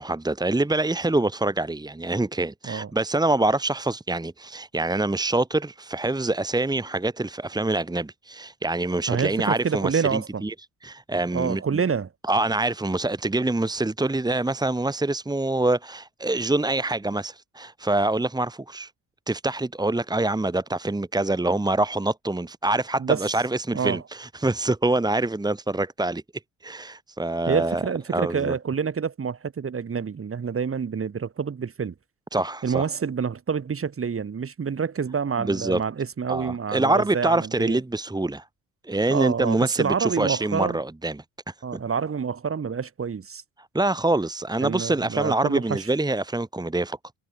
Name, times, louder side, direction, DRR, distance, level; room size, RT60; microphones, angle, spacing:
voice 1, 0.0-10.5 10.8-11.6 12.3-18.9 19.3-26.2 26.6-27.8 28.1-28.5 32.3-32.9 35.4-35.8 36.3-38.5 38.8-41.5 43.7-47.0, right 2 dB, 10° right, 2.6 m, -25 dB
voice 2, 9.1-10.4 11.3-12.1 23.0-23.3 23.7-24.0 27.5-31.9 32.6-37.8 39.1-40.8 41.6-43.4 44.6-45.9, right 6 dB, 35° right, 6.5 m, -27 dB
cardioid pair, 95°, 38 cm